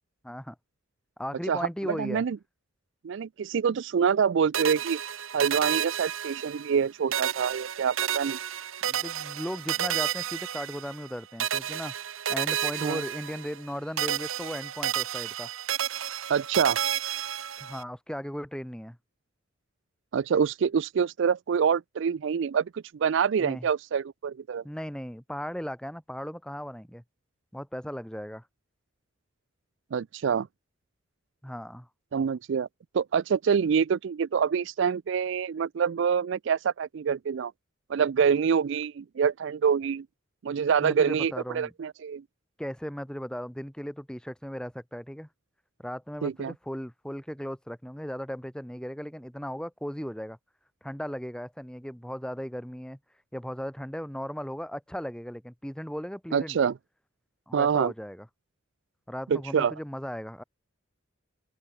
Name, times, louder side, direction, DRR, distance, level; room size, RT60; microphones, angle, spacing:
voice 1, 0.2-0.6 1.2-2.2 8.8-11.9 12.3-15.5 17.6-19.0 23.4-23.7 24.6-27.0 27.5-28.4 31.4-31.9 40.8-41.7 42.6-45.3 45.8-50.4 50.8-53.0 53.3-56.6 57.5-58.3 59.1-60.4, equal, 5° left, 2.2 m, -37 dB
voice 2, 1.5-2.4 3.0-5.0 5.3-8.4 12.8-13.0 16.3-16.8 20.1-24.6 29.9-30.5 32.1-32.7 32.9-37.5 37.9-40.1 40.4-42.2 46.2-46.5 56.3-56.7 57.5-57.9 59.3-59.7, right 7 dB, 60° right, 0.4 m, -26 dB
sound 1, 4.5-6.8 7.1-11.1 11.4-13.7 14.0-17.8, right 10 dB, 75° right, 1.1 m, -31 dB
open air
head